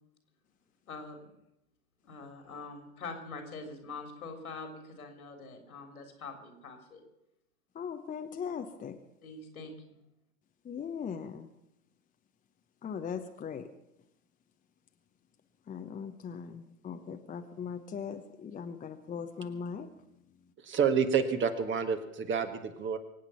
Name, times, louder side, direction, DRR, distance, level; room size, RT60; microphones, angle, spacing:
voice 1, 0.9-1.3 2.0-7.0 9.2-10.0, left 3 dB, 80° left, 5 dB, 3.5 m, -44 dB
voice 2, 7.7-9.0 10.6-11.5 12.8-13.7 15.7-19.9, left 6 dB, 20° left, 6 dB, 1.0 m, -39 dB
voice 3, 20.6-23.0, right 6 dB, 25° right, 8 dB, 1.6 m, -29 dB
24.5 x 8.8 x 5.8 m, 0.86 s
hypercardioid pair, 95°, 43 cm